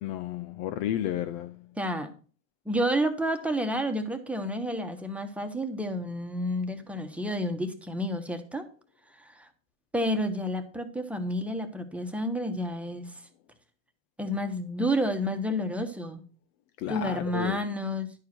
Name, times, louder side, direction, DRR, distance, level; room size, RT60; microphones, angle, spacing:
voice 1, 0.0-1.6 16.8-17.6, left 11 dB, 45° left, 0.5 m, -32 dB
voice 2, 1.8-2.1 2.6-8.7 9.2-9.5 9.9-13.2 14.2-16.2 16.9-18.1, equal, 5° right, 1.2 m, -30 dB
10.5 x 4.8 x 6.0 m
hypercardioid pair, 110°, 39 cm